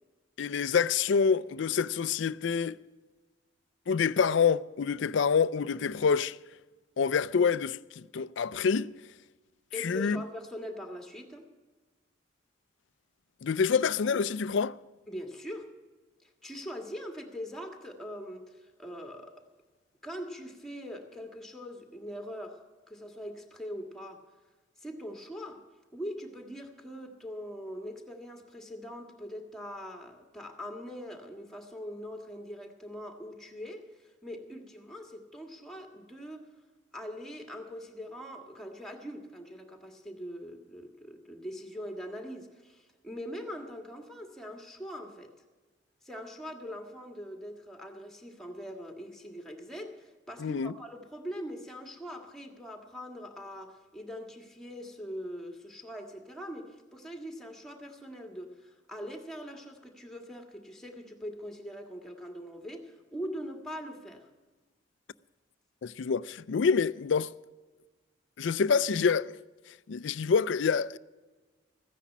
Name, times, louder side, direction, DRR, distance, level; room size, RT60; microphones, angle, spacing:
voice 1, 0.4-2.8 3.9-6.4 7.0-8.9 9.8-10.2 13.4-14.7 50.4-50.7 65.8-67.3 68.4-69.3 69.9-71.0, left 6 dB, 65° left, 0.4 m, -27 dB
voice 2, 9.7-11.5 15.1-15.7 16.2-19.4 20.0-24.2 24.8-25.7 25.9-33.9 34.2-36.5 36.9-45.3 46.0-64.3, equal, ahead, 1.6 m, -42 dB
14.5 x 10.0 x 7.2 m
head